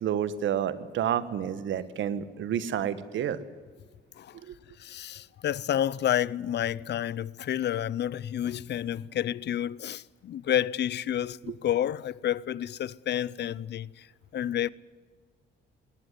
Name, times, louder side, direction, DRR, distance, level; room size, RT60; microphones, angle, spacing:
voice 1, 0.0-3.4 4.4-4.5, right 9 dB, 75° right, 1.6 m, -29 dB
voice 2, 4.8-14.1 14.3-14.7, left 11 dB, 60° left, 0.7 m, -30 dB
20.5 x 18.5 x 9.7 m
cardioid pair, 90°, 20 cm